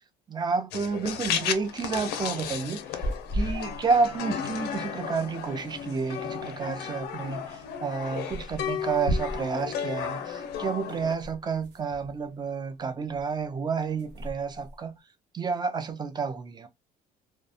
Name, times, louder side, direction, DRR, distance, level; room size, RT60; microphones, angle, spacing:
voice 1, 0.3-3.0 3.3-14.9 15.3-16.7, right 5 dB, 25° right, 0.4 m, -30 dB
sound 1, 0.7-11.1, left 8 dB, 75° left, 0.5 m, -34 dB
sound 2, 2.8-4.2 4.5-4.6 4.7-4.8 5.0-6.1 7.1-7.2 7.5-7.6 8.3-9.7 10.4-12.8 13.1-13.5 13.8-15.0, equal, 90° right, 0.9 m, -36 dB
2.3 x 2.2 x 2.7 m
cardioid pair, 110°, 17 cm